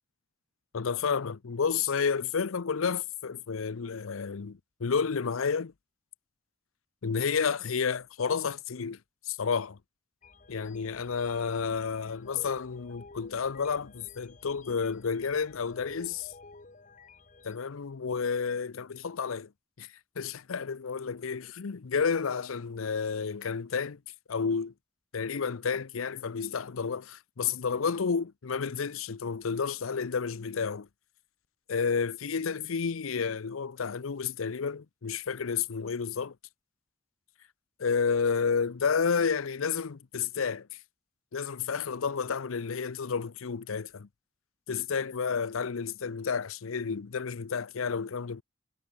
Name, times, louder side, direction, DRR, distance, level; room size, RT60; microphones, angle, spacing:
voice 1, 0.7-5.7 7.0-9.0 9.3-9.8 10.5-16.3 17.4-19.5 19.8-19.9 20.2-24.0 24.3-24.7 25.1-30.9 31.7-36.3 37.8-40.7 41.3-44.1 44.7-48.4, left 5 dB, 85° left, 0.6 m, -31 dB
sound 1, 10.2-17.6, left 3 dB, 40° left, 1.0 m, -51 dB
head